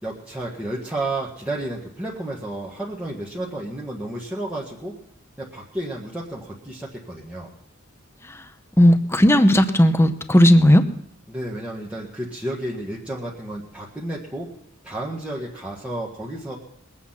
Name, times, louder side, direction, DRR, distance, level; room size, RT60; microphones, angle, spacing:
voice 1, 0.0-4.9 5.4-7.5 11.3-14.5 14.8-16.6, right 1 dB, 5° right, -5 dB, 1.6 m, -31 dB
voice 2, 8.8-10.8, equal, 10° left, 9 dB, 0.9 m, -15 dB
21.5 x 8.6 x 5.8 m, 0.75 s
head